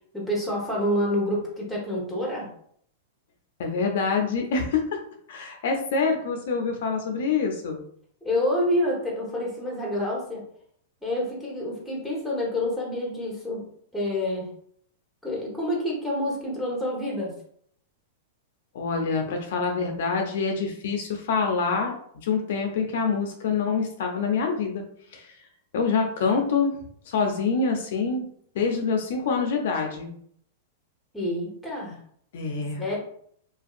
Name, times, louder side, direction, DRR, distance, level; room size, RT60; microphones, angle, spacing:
voice 1, 0.1-2.5 8.2-10.4 11.0-13.6 13.9-14.5 15.2-17.3 31.1-32.0 32.8-33.0, left 1 dB, ahead, -4 dB, 1.1 m, -28 dB
voice 2, 3.6-5.0 5.3-7.8 18.7-21.9 22.2-24.8 25.1-25.3 25.7-26.7 27.1-28.3 28.5-30.1 32.3-32.9, left 5 dB, 70° left, 3 dB, 0.5 m, -26 dB
2.5 x 2.3 x 2.4 m, 0.64 s
hypercardioid pair, 120°, 0 cm